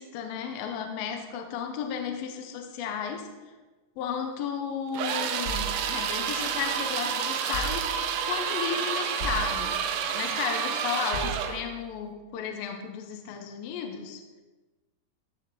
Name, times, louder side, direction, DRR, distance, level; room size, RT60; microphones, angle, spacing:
voice 1, 0.0-3.5 4.0-9.8 10.1-14.2, left 7 dB, 75° left, 4 dB, 2.4 m, -34 dB
sound 1, 4.9-11.6, right 7 dB, 90° right, 1.8 m, -29 dB
sound 2, 5.4-6.8 7.5-8.4 9.2-10.1 11.1-11.9, right 3 dB, 30° right, 2.3 m, -38 dB
14.0 x 7.3 x 4.2 m, 1.2 s
omnidirectional pair, 4.8 m